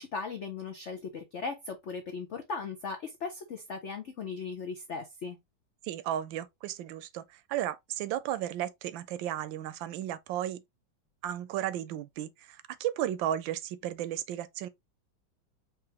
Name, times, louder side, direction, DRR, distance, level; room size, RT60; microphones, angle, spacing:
voice 1, 0.0-5.4, left 5 dB, 90° left, 0.6 m, -38 dB
voice 2, 5.8-10.6 11.2-14.7, right 11 dB, 75° right, 1.2 m, -34 dB
4.8 x 3.2 x 2.8 m
omnidirectional pair, 2.2 m